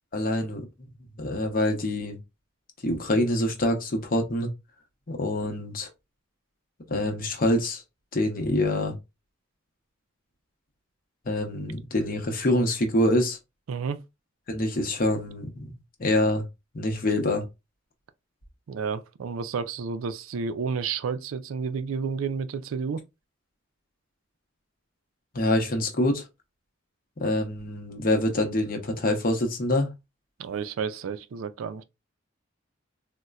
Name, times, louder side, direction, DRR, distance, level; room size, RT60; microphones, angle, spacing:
voice 1, 0.1-0.7 1.2-2.2 2.8-4.5 5.1-5.9 6.9-7.8 8.1-8.9 11.3-13.4 14.5-15.7 16.0-16.4 16.7-17.4 25.3-26.2 27.2-29.9, left 1 dB, 45° left, 0.7 m, -25 dB
voice 2, 13.7-14.0 18.7-23.0 30.4-31.8, right 5 dB, 85° right, 0.4 m, -31 dB
4.1 x 2.1 x 2.3 m
head